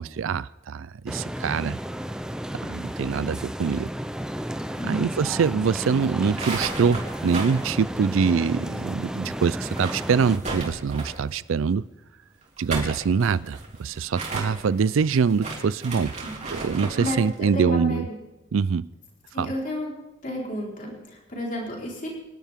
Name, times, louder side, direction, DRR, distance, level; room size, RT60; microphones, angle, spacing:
voice 1, 0.0-1.8 2.6-3.9 4.8-11.8 12.6-16.1 16.5-18.0 18.5-18.9 19.4-19.5, right 6 dB, 85° right, 0.4 m, -24 dB
sound 1, 1.1-10.4, equal, 5° right, 0.6 m, -33 dB
voice 2, 4.8-5.1 16.2-16.3 17.0-18.1 19.3-19.9 20.2-22.1, equal, 40° left, 4.3 m, -31 dB
sound 2, 6.2-8.8 9.1-9.2 9.5-11.3 12.4-17.3, right 3 dB, 35° right, 3.4 m, -34 dB
26.0 x 12.0 x 3.6 m
head